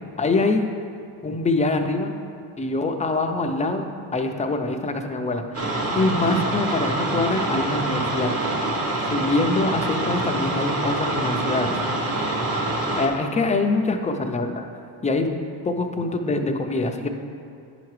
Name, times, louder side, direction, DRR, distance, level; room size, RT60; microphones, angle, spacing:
voice 1, 0.2-0.7 1.2-2.1 2.6-8.3 9.0-11.8 12.9-14.6 15.0-15.3 15.6-17.1, left 3 dB, 15° left, 5 dB, 0.4 m, -24 dB
sound 1, 5.5-13.1, right 2 dB, 30° right, 1.1 m, -25 dB
9.8 x 5.9 x 3.1 m, 2.5 s
cardioid pair, 120°, 45 cm